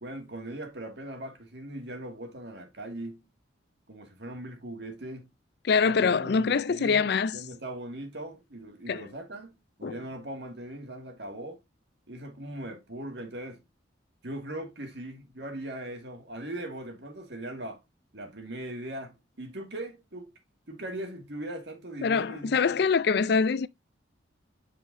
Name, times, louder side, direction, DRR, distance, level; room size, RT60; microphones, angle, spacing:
voice 1, 0.0-3.2 3.9-5.3 5.8-11.6 12.1-13.6 14.2-17.8 18.1-20.3 20.7-22.5, right 1 dB, 65° right, 2.0 m, -40 dB
voice 2, 5.6-7.4 8.9-9.1 9.8-10.0 22.0-23.7, left 5 dB, 60° left, 0.4 m, -24 dB
9.3 x 5.1 x 2.6 m
head